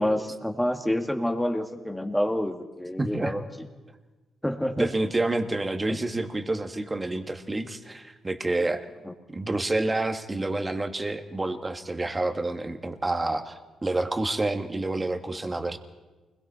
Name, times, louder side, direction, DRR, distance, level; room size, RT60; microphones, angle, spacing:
voice 1, 0.0-3.4 4.4-4.9 5.9-6.0, left 1 dB, 5° left, 5 dB, 2.2 m, -27 dB
voice 2, 3.0-3.4 4.8-8.9 9.3-15.8, right 2 dB, 20° right, 7 dB, 1.9 m, -28 dB
28.5 x 21.5 x 4.4 m, 1.2 s
cardioid pair, 85°, 0 cm